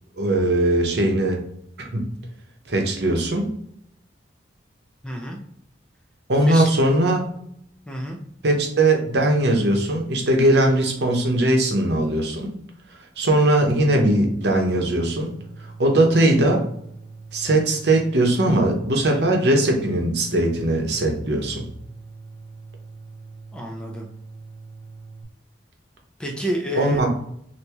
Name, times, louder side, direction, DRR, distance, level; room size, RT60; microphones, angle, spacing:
voice 1, 0.2-1.4 1.8-2.1 2.7-3.5 6.3-7.2 8.4-12.5 13.2-15.3 15.8-16.6 17.3-21.7 26.8-27.1, right 1 dB, 65° right, 2 dB, 0.8 m, -20 dB
voice 2, 5.0-5.4 6.5-6.7 7.9-8.2 23.5-24.1 26.2-27.0, left 1 dB, 5° left, 0 dB, 0.4 m, -28 dB
sound 1, 13.8-25.2, right 4 dB, 20° right, 0.8 m, -42 dB
3.4 x 2.6 x 2.9 m, 0.71 s
head